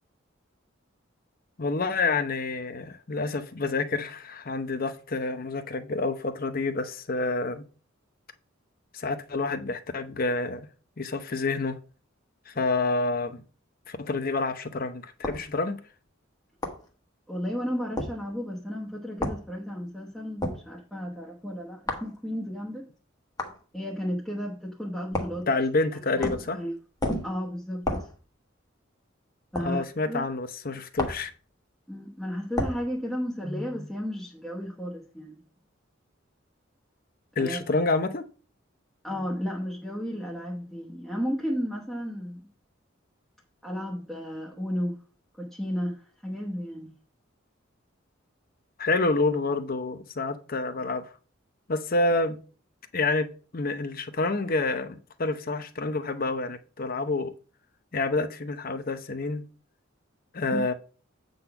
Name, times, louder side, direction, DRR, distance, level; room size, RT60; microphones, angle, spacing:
voice 1, 1.6-7.6 8.9-10.7 11.0-11.8 12.5-13.4 13.9-15.8 25.5-26.6 29.6-31.3 37.4-38.2 48.8-51.0 51.7-52.4 52.9-53.3 53.5-57.3 57.9-59.4 60.3-60.7, left 3 dB, 45° left, 0.8 m, -28 dB
sound 1, 15.2-15.5 16.6-16.8 18.0-18.1 19.2-19.4 20.4-20.6 21.9-22.1 23.4-23.6 25.1-25.4 26.2-26.5 27.0-27.3 27.9-28.1 29.6-29.7 31.0-31.3 32.6-32.8, left 1 dB, 20° left, 1.2 m, -30 dB
voice 2, 17.3-22.9 23.7-25.5 26.1-26.8 27.2-28.1 29.5-30.3 31.9-35.4 37.4-37.6 39.0-42.5 43.6-45.0 45.4-46.9 60.5-60.6, equal, ahead, 1.1 m, -33 dB
8.3 x 4.0 x 5.8 m
head